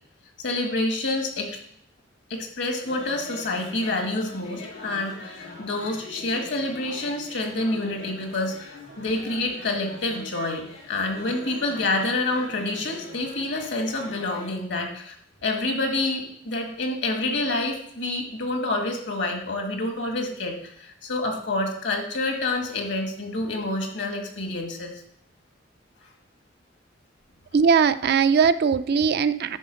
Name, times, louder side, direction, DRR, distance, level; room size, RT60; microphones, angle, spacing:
voice 1, 0.4-1.6 2.3-15.1 15.4-24.9, left 2 dB, 65° left, 3 dB, 1.8 m, -28 dB
sound 1, 2.8-14.5, left 2 dB, 85° left, 2.2 m, -43 dB
voice 2, 27.5-29.6, right 6 dB, 55° right, 12 dB, 0.4 m, -20 dB
10.0 x 3.8 x 6.3 m, 0.67 s
head